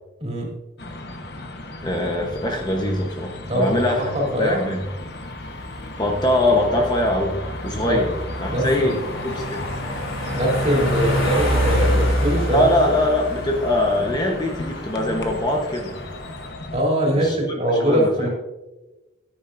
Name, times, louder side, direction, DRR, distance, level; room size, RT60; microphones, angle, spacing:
voice 1, 0.2-0.5 3.5-3.7 4.0-4.7 7.8-8.0 8.4-9.0 10.3-13.0 16.7-18.3, equal, 30° right, -2 dB, 3.2 m, -22 dB
sound 1, 0.8-16.8, left 2 dB, 55° left, 1.1 m, -35 dB
voice 2, 1.8-4.1 4.4-4.8 6.0-7.4 7.6-8.1 8.4-9.0 9.2-9.7 12.5-15.9 17.2-17.6 17.8-18.3, left 1 dB, 20° left, 1 dB, 1.0 m, -22 dB
sound 2, 4.8-16.5, equal, 80° left, 3.6 m, -27 dB
14.5 x 10.0 x 2.6 m, 1.1 s
head